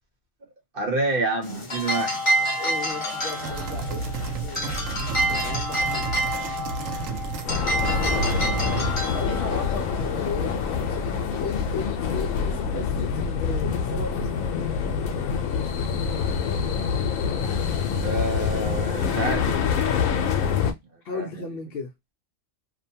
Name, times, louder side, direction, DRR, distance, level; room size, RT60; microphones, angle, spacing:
voice 1, 0.7-2.2 18.0-19.7 21.1-21.3, right 2 dB, 45° right, 0.9 m, -28 dB
sound 1, 1.4-11.8, right 1 dB, 25° left, 0.8 m, -29 dB
voice 2, 2.6-6.2 6.6-7.1 9.1-14.4 21.0-21.9, left 4 dB, 60° left, 0.7 m, -36 dB
sound 2, 3.3-7.5 7.8-9.1, right 3 dB, 75° right, 0.9 m, -31 dB
sound 3, 7.4-20.7, left 6 dB, 85° left, 1.0 m, -26 dB
2.8 x 2.2 x 2.6 m
omnidirectional pair, 1.4 m